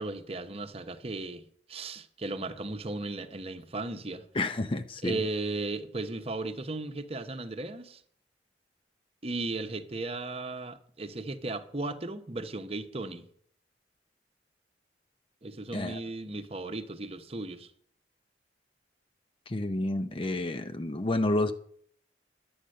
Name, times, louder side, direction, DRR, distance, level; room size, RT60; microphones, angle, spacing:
voice 1, 0.0-1.4 1.7-4.3 5.0-8.0 9.2-13.3 15.4-17.7, right 2 dB, 35° right, 1.0 m, -36 dB
voice 2, 4.3-5.2 15.7-16.0 19.5-21.5, left 2 dB, 30° left, 0.6 m, -30 dB
12.0 x 8.8 x 6.5 m
head